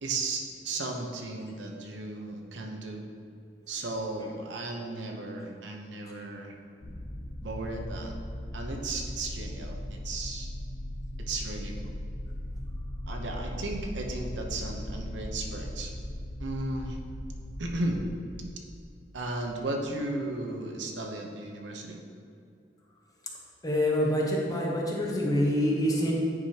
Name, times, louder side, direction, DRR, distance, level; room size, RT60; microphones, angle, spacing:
voice 1, 0.0-3.0 3.7-6.5 7.4-8.1 8.5-10.5 11.2-11.8 13.1-15.9 16.4-17.0 17.6-18.0 19.1-22.0, right 2 dB, 80° right, 1 dB, 0.8 m, -35 dB
sound 1, 6.8-19.8, left 1 dB, 60° left, 0.8 m, -38 dB
voice 2, 23.6-26.1, left 1 dB, 20° left, -3 dB, 1.0 m, -26 dB
9.6 x 4.9 x 2.9 m, 2.4 s
head